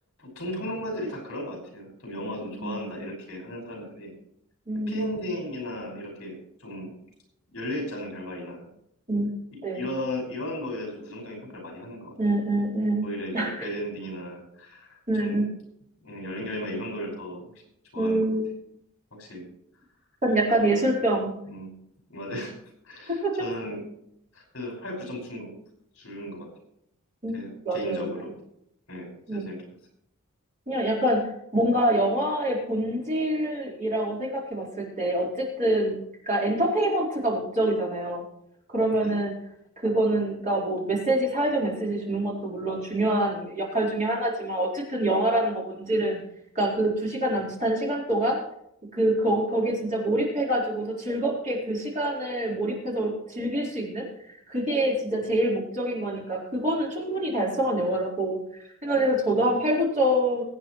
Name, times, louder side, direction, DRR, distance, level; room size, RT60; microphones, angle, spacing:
voice 1, 0.2-4.1 4.9-6.9 7.5-8.7 9.5-12.2 13.0-15.5 16.0-17.5 17.9-18.3 19.1-19.5 20.6-20.9 21.5-21.7 22.1-22.6 22.8-23.8 24.3-25.5 25.9-26.5 27.3-28.3 28.9-29.6 38.9-39.2 55.2-55.3 59.4-59.5, left 1 dB, 60° left, 0 dB, 5.7 m, -35 dB
voice 2, 2.6-2.9 4.7-5.1 9.1-9.3 9.6-9.9 12.2-13.1 13.3-13.5 15.1-15.5 17.9-18.5 20.2-21.3 23.1-23.5 27.2-27.4 27.6-28.2 29.3-29.5 30.7-36.0 36.3-38.2 38.7-39.3 39.8-46.2 46.5-48.4 48.9-54.1 54.5-60.4, right 1 dB, 35° right, -4 dB, 4.4 m, -26 dB
22.5 x 8.9 x 3.2 m, 0.75 s
head